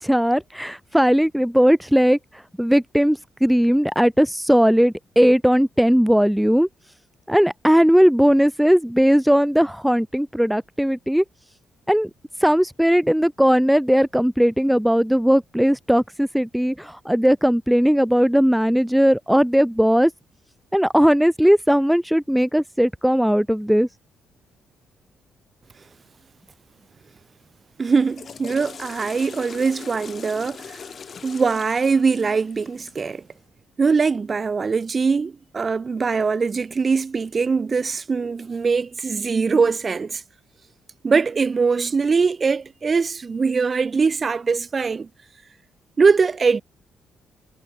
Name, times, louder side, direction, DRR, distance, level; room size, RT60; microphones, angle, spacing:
voice 1, 0.0-6.7 7.3-11.2 11.9-12.1 12.4-20.1 20.7-23.9, equal, ahead, 0.4 m, -18 dB
voice 2, 27.8-30.8 31.2-33.2 33.8-40.2 41.0-45.1 46.0-46.6, right 5 dB, 35° right, 0.9 m, -22 dB
Water / Toilet flush, 27.9-33.1, left 6 dB, 45° left, 6.2 m, -41 dB
cardioid pair, 90°, 0 cm